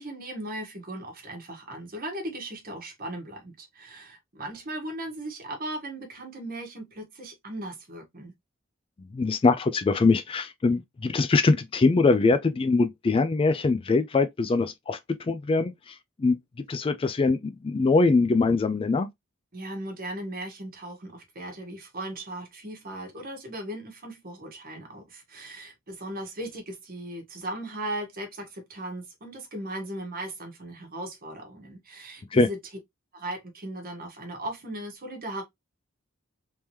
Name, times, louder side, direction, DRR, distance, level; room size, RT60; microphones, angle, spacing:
voice 1, 0.0-8.3 19.5-32.6 33.1-35.4, right 1 dB, 45° right, 1.3 m, -37 dB
voice 2, 9.1-15.0 15.3-16.4 16.7-19.1 32.3-32.5, left 3 dB, 25° left, 0.3 m, -23 dB
3.5 x 2.9 x 3.0 m
head